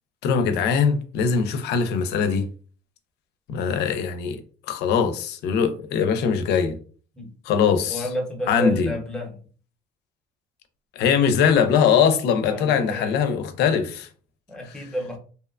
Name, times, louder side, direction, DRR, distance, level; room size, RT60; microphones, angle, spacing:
voice 1, 0.2-2.4 3.5-4.4 4.7-6.8 7.5-8.0 8.5-8.9 11.0-14.1, left 6 dB, 80° left, 0.5 m, -21 dB
voice 2, 7.9-9.4 12.5-13.2 14.5-15.2, equal, 5° left, 0.7 m, -30 dB
2.7 x 2.1 x 2.4 m
cardioid pair, 110°, 17 cm